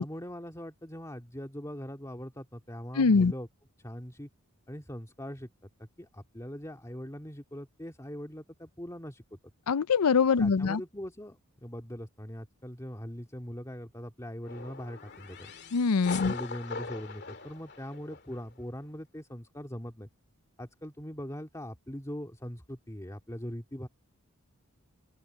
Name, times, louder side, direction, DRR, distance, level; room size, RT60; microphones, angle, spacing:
voice 1, 0.0-3.5 3.8-4.3 4.7-5.5 5.8-9.4 10.4-15.5 16.2-20.1 20.6-23.9, equal, 15° left, 2.2 m, -41 dB
voice 2, 3.0-3.3 9.7-10.8 15.7-16.3, left 5 dB, 85° left, 0.6 m, -23 dB
sound 1, 14.4-18.5, left 5 dB, 50° left, 2.4 m, -41 dB
open air
head